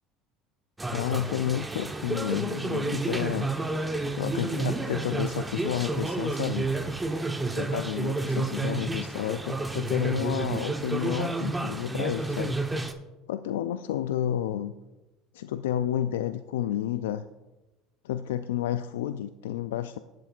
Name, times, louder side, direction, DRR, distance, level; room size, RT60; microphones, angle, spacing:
sound 1, 0.8-12.9, right 2 dB, 15° right, 1.0 m, -30 dB
voice 1, 0.9-3.5 4.2-6.7 7.4-12.6 13.3-14.7 15.3-17.2 18.0-20.0, left 11 dB, 85° left, 11 dB, 0.3 m, -30 dB
19.0 x 7.7 x 2.4 m, 1.1 s
hypercardioid pair, 80°, 0 cm